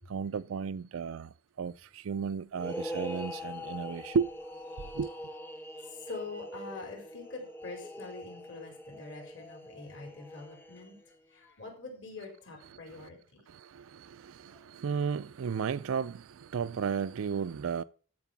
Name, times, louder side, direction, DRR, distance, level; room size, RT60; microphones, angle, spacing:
voice 1, 0.1-4.3 4.9-5.1 12.7-13.1 13.5-17.8, right 6 dB, 70° right, 0.4 m, -34 dB
sound 1, 2.5-11.1, left 1 dB, 10° left, 0.7 m, -43 dB
voice 2, 5.7-11.0 11.3-13.4 14.4-14.6, left 3 dB, 55° left, 4.5 m, -45 dB
13.0 x 4.7 x 7.0 m
head